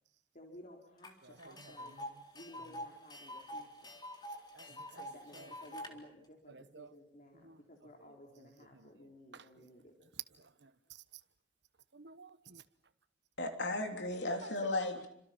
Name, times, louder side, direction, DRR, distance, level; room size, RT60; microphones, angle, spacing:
voice 1, 0.3-1.9 2.3-3.9 4.7-4.8 5.1-9.9, left 1 dB, 45° left, 4.2 m, -56 dB
Tick, 1.0-1.1 1.4-5.9, left 1 dB, 25° left, 3.9 m, -46 dB
voice 2, 1.2-2.2 2.7-2.8 4.5-5.8 6.5-6.9 7.3-7.6 8.0-8.9 9.3-9.7 10.1-11.0 11.9-12.6 14.3-15.0, right 5 dB, 80° right, 1.2 m, -53 dB
voice 3, 13.4-15.1, left 2 dB, 85° left, 3.5 m, -35 dB
30.0 x 26.5 x 6.0 m
head